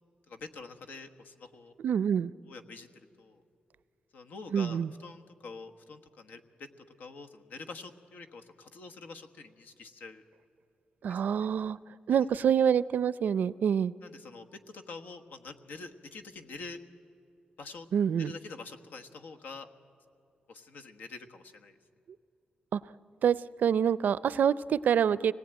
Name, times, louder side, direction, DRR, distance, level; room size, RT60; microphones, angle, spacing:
voice 1, 0.3-1.7 2.5-3.4 4.1-10.2 11.1-11.2 12.1-12.2 14.0-16.8 17.6-17.9 18.2-19.7 20.5-21.8, left 4 dB, 90° left, 6 dB, 1.3 m, -46 dB
voice 2, 1.8-2.3 4.5-4.9 11.0-11.8 12.1-13.9 17.9-18.3 22.7-22.8 23.2-25.3, right 8 dB, 70° right, 18 dB, 0.5 m, -26 dB
25.0 x 18.5 x 9.0 m, 2.6 s
wide cardioid pair, 115°, 3 cm